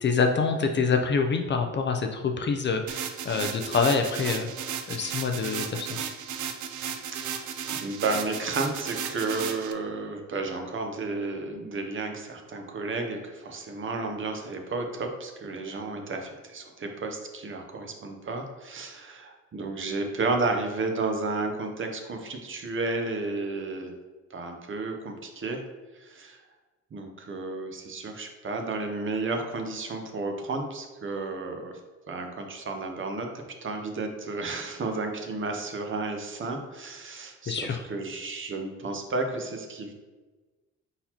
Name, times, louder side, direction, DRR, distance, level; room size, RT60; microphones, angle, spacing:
voice 1, 0.0-4.5 4.9-6.1 37.5-37.8, left 5 dB, 40° left, 5 dB, 0.5 m, -26 dB
sound 1, 2.9-9.7, right 8 dB, 70° right, 0.5 m, -35 dB
voice 2, 6.8-7.5 7.8-23.9 24.3-25.6 25.9-26.4 26.9-31.7 32.1-39.9, right 3 dB, 40° right, 3 dB, 0.8 m, -32 dB
4.1 x 3.9 x 2.9 m, 1.3 s
cardioid pair, 90°, 30 cm